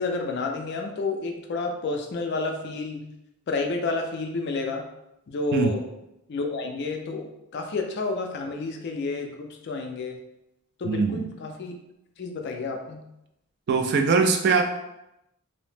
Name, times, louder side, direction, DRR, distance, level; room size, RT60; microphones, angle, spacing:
voice 1, 0.0-3.0 3.5-4.8 5.3-5.8 6.3-10.2 10.8-11.7 12.2-13.0, left 3 dB, 50° left, 3 dB, 0.3 m, -30 dB
voice 2, 10.8-11.3 13.7-14.6, right 4 dB, 50° right, 4 dB, 0.3 m, -21 dB
2.7 x 2.0 x 3.2 m, 0.87 s
head